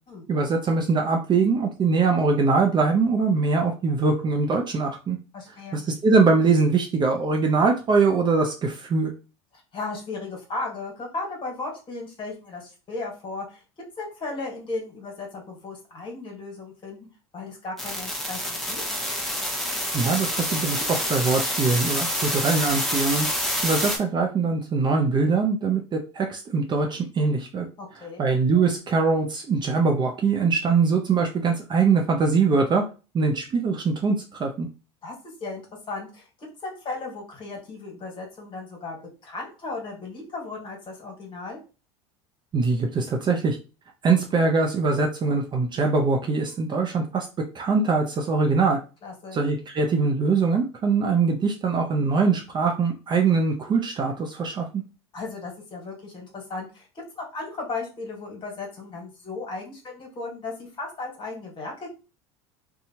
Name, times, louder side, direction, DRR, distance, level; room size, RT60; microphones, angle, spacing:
voice 1, 0.3-5.2 5.7-9.1 19.9-23.3 23.6-27.7 28.2-32.8 33.1-34.7 42.5-43.6 44.0-47.3 47.5-48.8 49.3-54.7, right 4 dB, 30° right, 2 dB, 0.6 m, -22 dB
voice 2, 5.3-5.8 9.7-13.6 14.0-17.1 17.3-18.8 27.8-28.2 35.0-35.1 35.4-35.6 35.9-41.6 49.0-49.4 55.1-56.9 57.1-61.9, left 3 dB, 35° left, 0 dB, 1.5 m, -35 dB
sound 1, 17.8-24.0, equal, ahead, 0.9 m, -27 dB
2.7 x 2.3 x 2.8 m, 0.32 s
hypercardioid pair, 95°, 15 cm